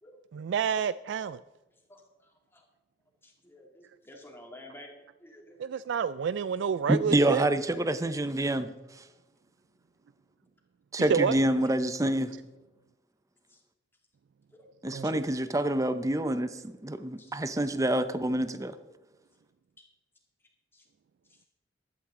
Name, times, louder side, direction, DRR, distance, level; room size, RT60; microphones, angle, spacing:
voice 1, 0.3-1.4 5.6-7.5 11.0-11.4 14.9-15.2, right 7 dB, 75° right, 16 dB, 0.3 m, -29 dB
voice 2, 3.2-3.7 4.1-4.9 5.2-5.8 13.5-13.6 14.5-14.7 17.2-17.3 18.6-18.7 20.7-20.8, left 1 dB, 15° left, 1 dB, 2.3 m, -51 dB
voice 3, 6.9-8.7 10.9-12.3 14.8-18.7, right 1 dB, 20° right, 12 dB, 0.7 m, -27 dB
15.0 x 11.5 x 3.8 m, 1.1 s
head